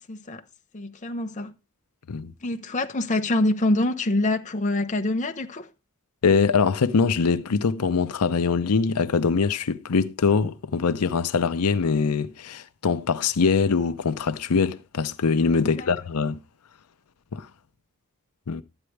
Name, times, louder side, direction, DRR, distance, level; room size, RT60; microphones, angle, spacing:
voice 1, 0.1-0.4 0.7-1.5 2.4-5.7 15.6-15.9, left 2 dB, 35° left, 0.8 m, -25 dB
voice 2, 6.2-16.4 17.3-17.5 18.5-18.6, left 5 dB, 85° left, 0.6 m, -23 dB
12.5 x 9.0 x 3.2 m
head